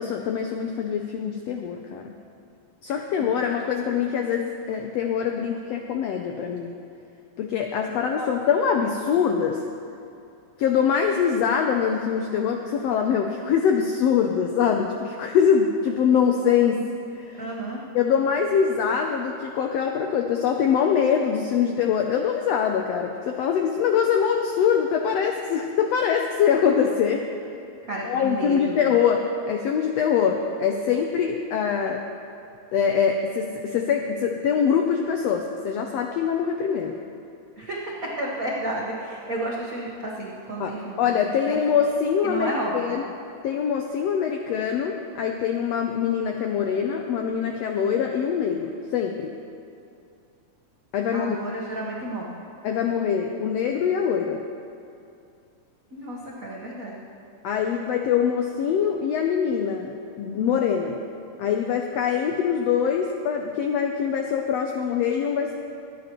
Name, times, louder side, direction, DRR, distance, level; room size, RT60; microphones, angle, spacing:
voice 1, 0.0-2.1 2.8-6.8 7.4-9.6 10.6-16.8 17.1-17.4 17.9-27.2 28.0-32.0 32.7-37.0 40.6-43.0 43.4-49.3 50.9-51.4 52.6-54.4 57.4-61.0 61.4-65.5, left 7 dB, 85° left, 3 dB, 1.4 m, -23 dB
voice 2, 17.4-17.8 27.8-28.8 37.6-41.1 41.5-41.6 42.2-42.9 51.1-52.4 55.9-57.0, right 1 dB, 80° right, -5 dB, 0.7 m, -32 dB
25.0 x 9.2 x 3.0 m, 2.5 s
omnidirectional pair, 3.6 m